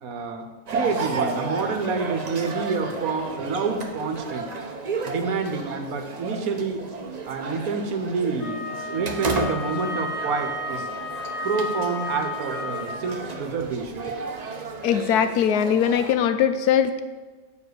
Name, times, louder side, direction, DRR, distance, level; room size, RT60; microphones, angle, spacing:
voice 1, 0.0-4.5 5.1-6.9 7.2-10.9 11.4-14.1, right 4 dB, 70° right, 6 dB, 1.3 m, -28 dB
sound 1, 0.7-16.1, right 3 dB, 40° right, 0.6 m, -33 dB
Wind instrument woodwind instrument, 8.4-13.2, left 3 dB, 10° right, 3.0 m, -33 dB
voice 2, 14.8-17.0, left 8 dB, 85° left, 10 dB, 1.2 m, -21 dB
7.1 x 5.2 x 6.7 m, 1.3 s
omnidirectional pair, 1.6 m